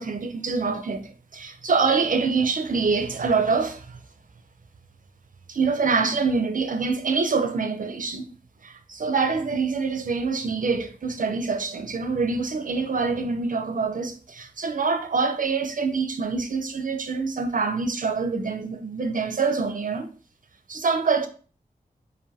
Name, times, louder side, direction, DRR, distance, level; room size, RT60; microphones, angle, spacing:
voice 1, 0.0-4.0 5.5-8.3 8.6-20.1 20.7-21.3, right 4 dB, 55° right, 0.6 m, -25 dB
5.0 x 2.6 x 3.4 m
wide cardioid pair, 110°, 16 cm